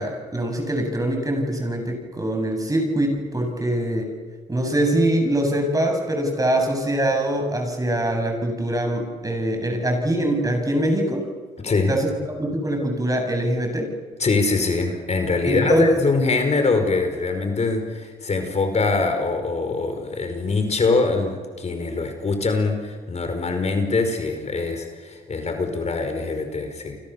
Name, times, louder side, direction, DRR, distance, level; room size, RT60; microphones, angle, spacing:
voice 1, 0.0-4.1 4.5-11.3 11.9-13.9 15.4-15.9, right 1 dB, 20° right, 4 dB, 7.9 m, -23 dB
voice 2, 11.6-11.9 14.2-27.0, left 3 dB, 40° left, 6 dB, 5.1 m, -23 dB
30.0 x 25.0 x 7.2 m, 1.5 s
cardioid pair, 70°, 17 cm